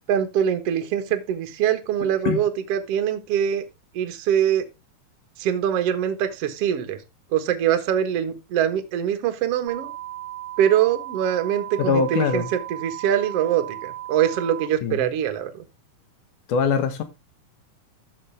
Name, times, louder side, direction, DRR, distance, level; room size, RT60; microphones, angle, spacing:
voice 1, 0.1-3.6 3.9-4.6 5.4-7.0 7.3-9.9 10.6-15.6, right 9 dB, 55° right, 1.9 m, -23 dB
voice 2, 2.0-2.4 11.8-12.5 14.8-15.1 16.5-17.0, left 6 dB, 70° left, 2.8 m, -23 dB
sound 1, 9.7-14.7, right 14 dB, 75° right, 1.0 m, -36 dB
13.0 x 6.6 x 3.4 m
omnidirectional pair, 4.0 m